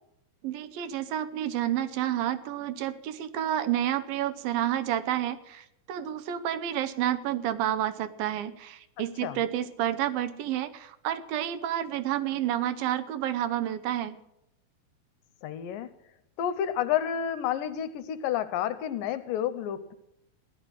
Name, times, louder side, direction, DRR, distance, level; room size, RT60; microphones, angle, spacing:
voice 1, 0.4-14.2, right 11 dB, 80° right, 11 dB, 2.5 m, -30 dB
voice 2, 15.4-15.9 16.4-19.9, left 10 dB, 75° left, 12 dB, 2.3 m, -30 dB
15.5 x 11.5 x 6.3 m, 0.81 s
omnidirectional pair, 4.3 m